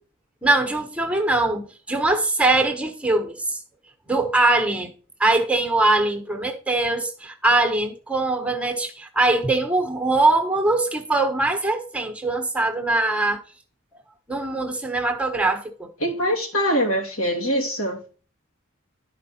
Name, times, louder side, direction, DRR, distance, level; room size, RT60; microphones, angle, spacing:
voice 1, 0.4-3.6 4.1-4.9 5.2-13.4 14.3-15.9, right 2 dB, 5° right, 1.1 m, -22 dB
voice 2, 16.0-18.0, equal, 85° left, 2.9 m, -23 dB
11.0 x 5.1 x 4.2 m
head